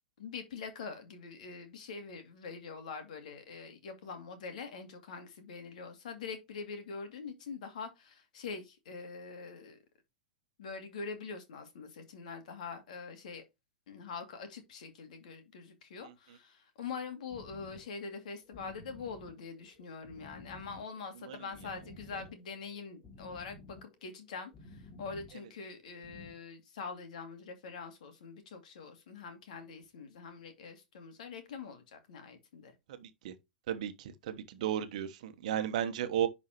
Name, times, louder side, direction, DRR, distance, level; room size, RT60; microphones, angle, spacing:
voice 1, 0.2-9.8 10.6-13.4 13.9-32.7, left 5 dB, 60° left, 2.3 m, -44 dB
sound 1, 17.3-26.3, left 2 dB, 30° left, 3.4 m, -53 dB
voice 2, 33.0-33.3 33.7-36.3, right 10 dB, 55° right, 1.1 m, -34 dB
10.5 x 4.2 x 3.0 m
figure-of-eight pair, 95°, 5 cm